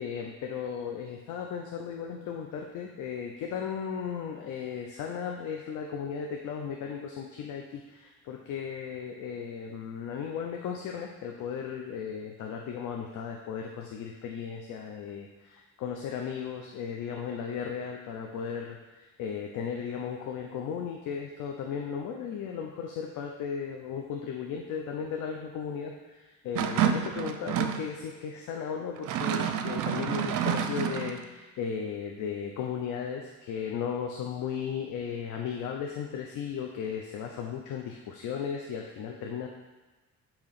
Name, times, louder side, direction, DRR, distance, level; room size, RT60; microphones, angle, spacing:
voice 1, 0.0-39.5, left 7 dB, 85° left, 1 dB, 0.7 m, -36 dB
sound 1, 26.5-27.9 29.0-31.2, right 9 dB, 85° right, 0.6 m, -29 dB
8.9 x 3.0 x 5.8 m, 1.2 s
cardioid pair, 90°, 30 cm